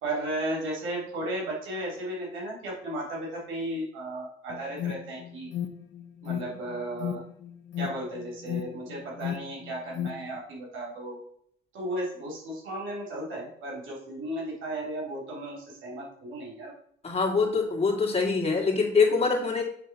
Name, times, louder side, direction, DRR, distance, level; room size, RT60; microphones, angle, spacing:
voice 1, 0.0-5.5 6.2-7.2 7.8-11.2 11.7-16.7, right 1 dB, 85° right, -3 dB, 3.3 m, -35 dB
Alarm, 4.5-10.4, left 10 dB, 70° left, 0.8 m, -36 dB
voice 2, 17.0-19.6, left 4 dB, 30° left, 0 dB, 2.6 m, -24 dB
8.6 x 3.8 x 5.9 m, 0.65 s
cardioid pair, 90°, 20 cm